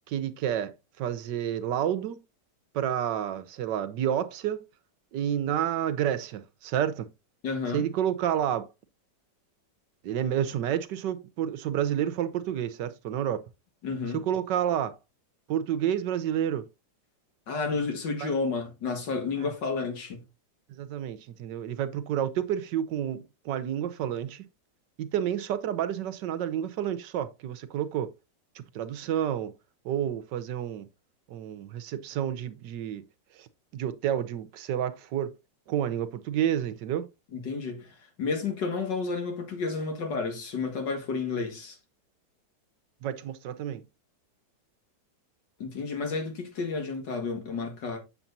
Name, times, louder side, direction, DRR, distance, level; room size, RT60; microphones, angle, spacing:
voice 1, 0.1-2.2 2.7-4.6 5.1-7.1 7.7-8.7 10.0-13.4 14.1-15.0 15.5-16.7 18.2-18.3 19.4-19.5 20.7-24.5 25.0-28.1 28.5-29.5 29.8-30.9 31.3-33.0 33.3-33.5 33.7-35.3 35.7-37.1 43.0-43.9, right 10 dB, 80° right, 1.4 m, -30 dB
voice 2, 7.4-7.9 13.8-14.3 17.5-20.2 37.3-41.8 45.6-48.0, left 4 dB, 85° left, 2.5 m, -31 dB
7.6 x 7.2 x 2.6 m
omnidirectional pair, 1.9 m